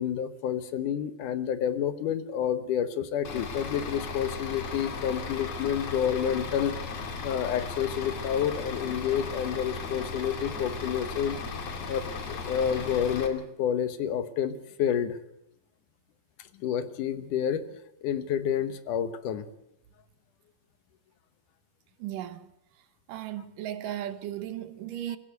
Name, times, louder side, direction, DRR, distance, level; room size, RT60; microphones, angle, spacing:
voice 1, 0.0-11.4 11.9-15.2 16.4-17.7 18.0-19.5 25.1-25.2, left 9 dB, 70° left, 2.5 m, -29 dB
Bus / Idling, 3.2-13.3, left 5 dB, 50° left, 3.1 m, -36 dB
voice 2, 22.0-22.5 23.1-25.2, right 12 dB, 70° right, 2.6 m, -36 dB
24.0 x 16.0 x 8.0 m
omnidirectional pair, 4.0 m